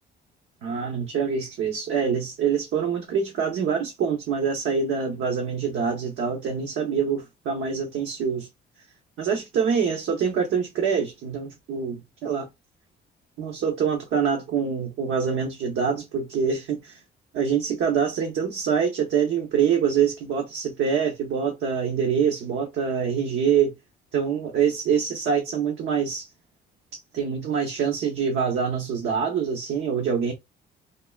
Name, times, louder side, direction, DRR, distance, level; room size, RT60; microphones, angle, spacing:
voice 1, 0.6-8.5 9.2-12.5 13.4-17.0 17.3-23.7 24.1-26.3 26.9-30.3, right 7 dB, 80° right, 0.8 m, -25 dB
3.5 x 2.1 x 2.3 m
cardioid pair, 90°, 20 cm